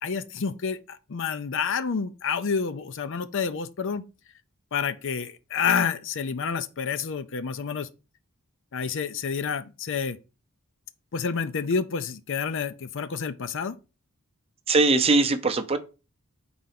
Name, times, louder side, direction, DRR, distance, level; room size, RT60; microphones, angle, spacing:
voice 1, 0.0-4.0 4.7-7.9 8.7-10.2 11.1-13.8, left 6 dB, 60° left, 0.5 m, -29 dB
voice 2, 14.7-15.8, right 3 dB, 25° right, 0.6 m, -21 dB
4.7 x 3.9 x 5.7 m
head